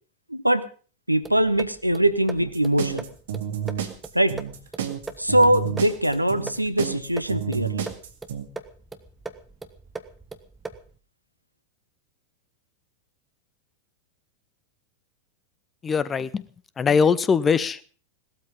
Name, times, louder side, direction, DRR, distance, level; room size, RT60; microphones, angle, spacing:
voice 1, 0.3-0.7 1.1-3.1 4.1-4.4 5.2-7.9, right 1 dB, 90° right, 13 dB, 1.0 m, -22 dB
sound 1, 1.2-11.0, right 3 dB, 10° right, 1.3 m, -41 dB
sound 2, 2.4-8.5, right 9 dB, 60° right, 2.1 m, -30 dB
voice 2, 15.8-16.5 16.8-18.0, left 6 dB, 20° left, 18 dB, 0.8 m, -22 dB
18.0 x 13.0 x 5.3 m, 0.41 s
figure-of-eight pair, 90°, 0 cm